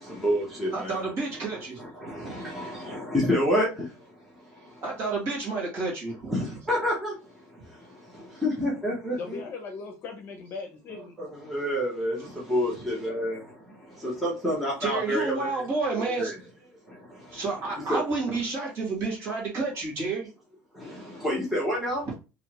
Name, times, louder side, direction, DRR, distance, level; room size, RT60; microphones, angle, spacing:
voice 1, 0.0-1.1 1.5-4.8 6.3-9.4 10.9-15.5 16.2-16.3 16.9-17.4 17.9-18.0 20.7-22.1, equal, ahead, 0.9 m, -29 dB
voice 2, 0.7-2.5 4.8-6.3 14.8-16.3 17.3-20.3, right 3 dB, 40° right, 1.8 m, -30 dB
voice 3, 9.2-11.1, left 4 dB, 35° left, 0.8 m, -38 dB
3.2 x 2.9 x 2.9 m
cardioid pair, 160°, 7 cm